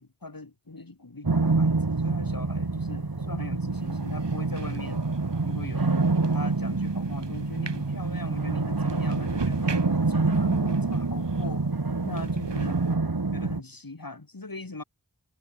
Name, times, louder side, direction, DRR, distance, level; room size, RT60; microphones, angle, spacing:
voice 1, 0.0-5.1 5.4-11.7 12.0-13.0 13.3-14.8, left 3 dB, 55° left, 3.6 m, -41 dB
sound 1, 1.2-13.6, right 3 dB, 55° right, 2.6 m, -26 dB
sound 2, 3.7-11.6 12.1-13.0, right 5 dB, 85° right, 1.6 m, -42 dB
wide cardioid pair, 45°, 41 cm